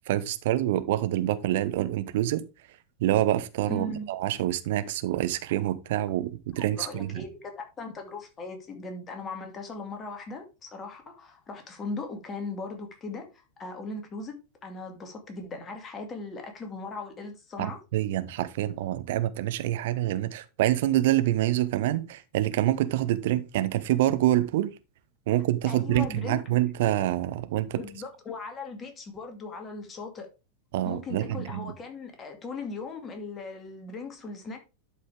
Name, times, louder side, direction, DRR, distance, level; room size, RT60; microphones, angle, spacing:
voice 1, 0.1-2.4 3.0-7.2 17.6-24.7 25.3-27.8 30.7-31.7, right 14 dB, 55° right, 0.9 m, -26 dB
voice 2, 3.7-4.1 6.6-13.3 13.6-14.3 14.6-17.8 25.7-26.4 27.7-30.3 30.8-34.6, left 3 dB, 25° left, 2.3 m, -38 dB
11.5 x 5.5 x 3.5 m
figure-of-eight pair, 90°, 0 cm